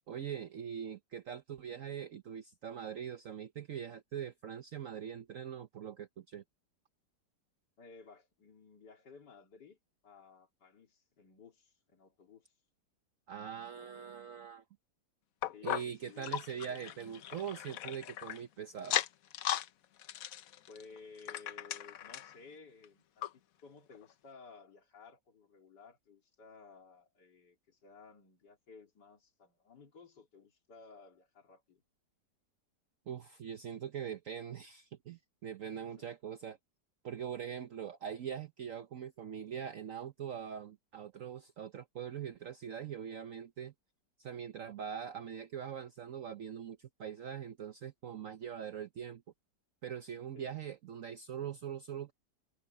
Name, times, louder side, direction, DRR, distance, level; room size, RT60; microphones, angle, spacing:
voice 1, 0.0-6.4 13.3-14.6 15.6-19.0 33.1-36.6 37.0-43.7 44.2-49.2 49.8-52.1, right 8 dB, 55° right, 1.1 m, -42 dB
voice 2, 7.8-9.8 10.0-12.5 13.7-14.4 15.5-16.9 20.7-31.8 35.8-36.1 50.3-50.5, left 5 dB, 80° left, 3.3 m, -56 dB
sound 1, 15.4-18.4 18.8-19.7 20.0-22.4 22.8-22.9 23.2-23.3 23.9-24.0, left 11 dB, 65° left, 1.0 m, -37 dB
omnidirectional pair, 1.8 m